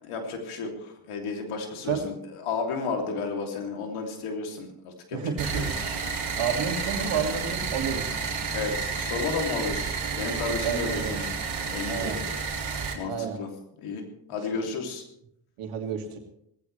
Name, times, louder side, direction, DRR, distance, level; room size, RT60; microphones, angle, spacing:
voice 1, 0.0-5.6 8.5-12.3 12.9-13.5 13.8-14.0 14.3-15.0, left 4 dB, 90° left, 2 dB, 3.1 m, -33 dB
voice 2, 5.1-5.6 6.3-8.1 10.6-11.3 11.9-12.2 13.1-13.4 15.6-16.2, right 7 dB, 85° right, 3 dB, 2.6 m, -30 dB
sound 1, 5.4-12.5, right 3 dB, 20° right, 4.7 m, -45 dB
sound 2, 5.4-12.9, right 5 dB, 65° right, 3.7 m, -31 dB
19.0 x 16.0 x 3.3 m, 0.75 s
cardioid pair, 70°, 49 cm